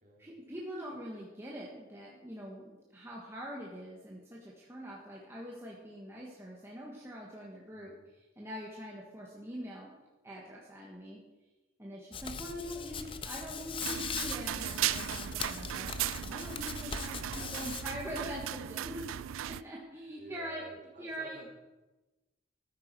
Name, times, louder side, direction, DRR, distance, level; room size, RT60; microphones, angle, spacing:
voice 1, 0.2-7.9 8.4-11.2 11.8-19.1 19.4-20.6 21.0-21.4, equal, 15° right, -4 dB, 1.4 m, -43 dB
voice 2, 7.7-8.1 12.5-13.2 17.1-17.9 20.1-21.5, right 2 dB, 40° right, -2 dB, 2.8 m, -52 dB
Hands, 12.1-18.4, left 6 dB, 25° left, 0.6 m, -41 dB
sound 1, 13.8-19.6, right 11 dB, 90° right, 0.3 m, -37 dB
13.5 x 9.3 x 4.7 m, 1.1 s
head